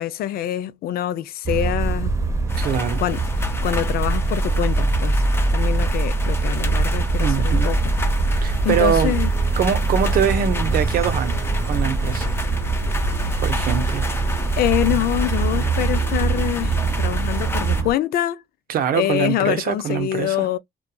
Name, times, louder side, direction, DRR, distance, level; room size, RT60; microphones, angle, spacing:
voice 1, 0.0-2.1 2.5-2.7 3.0-5.2 5.5-7.9 8.3-8.4 8.6-9.3 14.6-18.4 18.9-20.6, left 12 dB, 65° left, 0.5 m, -25 dB
sound 1, 1.4-17.9, right 3 dB, 15° right, 0.7 m, -22 dB
sound 2, 2.5-17.8, left 3 dB, 15° left, 0.7 m, -33 dB
voice 2, 2.5-3.0 7.2-7.7 8.4-9.1 9.6-12.3 13.4-14.0 18.7-20.5, right 8 dB, 60° right, 0.7 m, -23 dB
2.7 x 2.3 x 2.2 m
cardioid pair, 110°, 17 cm